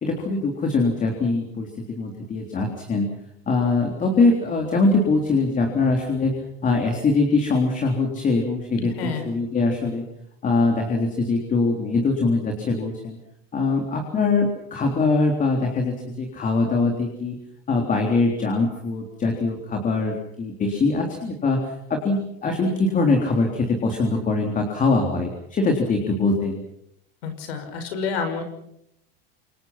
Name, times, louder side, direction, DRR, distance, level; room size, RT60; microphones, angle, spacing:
voice 1, 0.0-3.1 3.5-10.0 10.4-13.2 13.5-17.4 17.7-26.6, left 3 dB, 25° left, 2 dB, 3.7 m, -22 dB
voice 2, 8.8-9.2 27.2-28.5, left 5 dB, 90° left, 7 dB, 6.0 m, -29 dB
27.0 x 23.5 x 6.0 m, 0.77 s
supercardioid pair, 125°, 30 cm